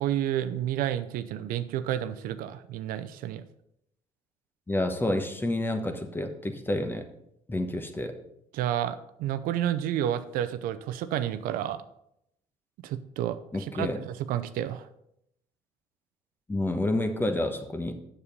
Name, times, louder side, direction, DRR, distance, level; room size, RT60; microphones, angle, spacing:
voice 1, 0.0-3.4 8.5-11.8 12.8-14.9, right 11 dB, 75° right, 12 dB, 0.6 m, -30 dB
voice 2, 4.7-7.1 7.5-8.1 13.5-14.0 16.5-17.9, left 1 dB, 15° left, 7 dB, 1.1 m, -29 dB
7.0 x 6.9 x 5.3 m, 0.78 s
supercardioid pair, 90°, 15 cm